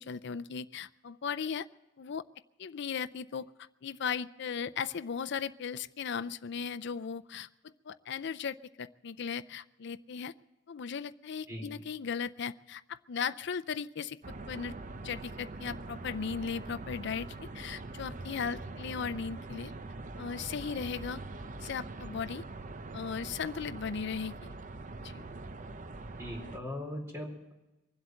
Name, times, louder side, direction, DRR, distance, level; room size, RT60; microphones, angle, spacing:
voice 1, 0.0-1.7 2.0-2.2 2.6-3.5 3.8-7.5 7.9-10.3 10.7-14.2 14.5-14.7 15.0-17.3 17.5-19.7 20.2-21.2 21.6-22.4 22.9-24.3 25.0-25.2, left 6 dB, 65° left, 13 dB, 0.5 m, -37 dB
sound 1, 14.2-26.6, right 2 dB, 40° right, 0.7 m, -43 dB
voice 2, 26.2-27.5, left 1 dB, 15° right, -1 dB, 4.2 m, -39 dB
23.0 x 8.0 x 7.7 m, 1.0 s
head